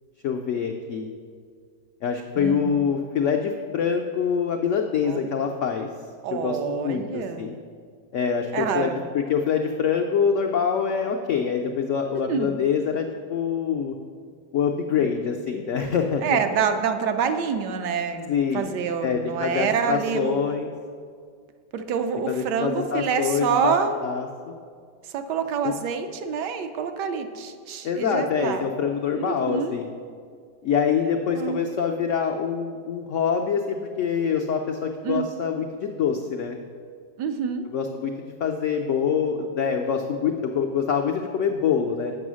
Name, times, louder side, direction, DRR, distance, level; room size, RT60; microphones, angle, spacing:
voice 1, 0.2-1.1 2.0-5.9 6.3-7.6 8.1-13.9 14.5-16.4 18.3-18.7 19.0-20.7 22.3-23.7 24.0-24.5 25.6-25.7 27.8-29.9 30.6-36.6 37.7-38.1 38.4-42.2, left 7 dB, 80° left, 3 dB, 0.6 m, -25 dB
voice 2, 2.3-2.8 5.0-5.3 6.2-7.6 8.5-9.0 12.3-12.6 15.0-15.1 16.2-20.4 21.7-24.0 25.0-28.6 29.2-29.8 31.3-31.6 35.0-35.3 37.2-37.6, right 6 dB, 80° right, 7 dB, 1.2 m, -27 dB
7.7 x 5.5 x 6.2 m, 2.1 s
omnidirectional pair, 1.8 m